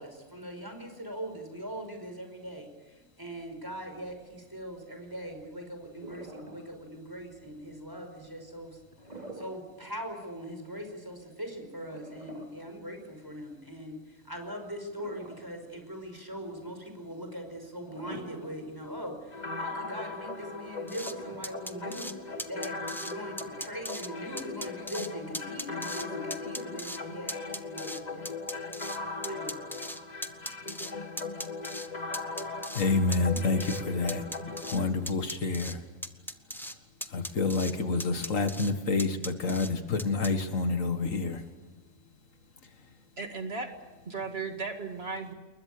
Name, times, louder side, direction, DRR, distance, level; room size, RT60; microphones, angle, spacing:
voice 1, 0.0-8.8 9.3-28.4 29.3-29.6, equal, 15° right, 5 dB, 5.4 m, -41 dB
sound 1, 6.0-7.0 8.9-9.7 10.1-10.2 11.8-13.3 14.9-15.8 16.2-16.3 17.8-18.8 19.1-19.2 20.9-22.0, right 1 dB, 30° right, 4.2 m, -47 dB
sound 2, 19.3-34.8, left 3 dB, 35° left, 1.7 m, -39 dB
sound 3, 20.9-21.1 21.4-22.1 22.4-23.1 23.4-24.1 24.4-25.1 25.3-26.1 26.3-27.0 27.3-29.0 29.2-30.9 31.2-31.9 32.1-32.9 33.1-33.8 34.1-34.8 35.1-35.7 36.0-36.8 37.0-37.7 38.0-38.7 39.0-39.7 40.0-40.3, equal, ahead, 1.1 m, -38 dB
voice 2, 32.7-34.3 34.7-35.8 37.1-41.4, left 3 dB, 80° left, 8 dB, 2.2 m, -28 dB
voice 3, 43.2-43.7 44.1-45.3, right 4 dB, 50° right, 5 dB, 2.3 m, -35 dB
29.0 x 22.0 x 6.9 m, 1.2 s
omnidirectional pair, 1.3 m